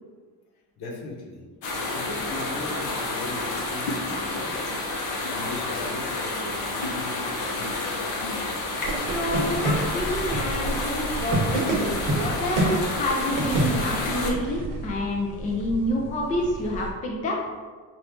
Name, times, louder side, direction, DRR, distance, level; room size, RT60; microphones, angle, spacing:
voice 1, 0.8-1.4 1.7-4.5 5.1-8.1, left 2 dB, 65° left, -1 dB, 1.1 m, -38 dB
sound 1, 1.6-14.3, left 2 dB, 90° left, 1.0 m, -30 dB
sound 2, 8.8-16.9, right 2 dB, 50° right, 0.8 m, -29 dB
voice 2, 9.1-17.4, left 1 dB, 20° left, -1 dB, 0.4 m, -28 dB
4.6 x 2.5 x 3.6 m, 1.4 s
cardioid pair, 150°, 41 cm